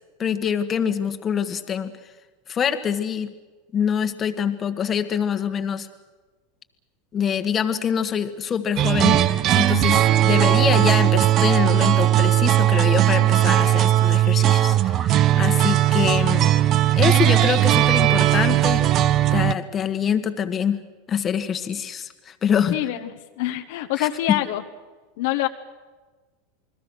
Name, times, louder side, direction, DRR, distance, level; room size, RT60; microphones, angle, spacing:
voice 1, 0.2-1.9 2.5-3.3 3.7-5.9 7.1-9.2 9.6-16.5 17.0-18.8 19.3-20.8 21.1-22.8 24.0-24.4, left 8 dB, 30° left, 8 dB, 1.6 m, -25 dB
sound 1, 8.8-19.5, right 13 dB, 45° right, 0.8 m, -18 dB
voice 2, 22.7-24.6 25.2-25.5, left 15 dB, 70° left, 6 dB, 1.3 m, -25 dB
28.5 x 20.5 x 6.4 m, 1.3 s
hypercardioid pair, 105°, 0 cm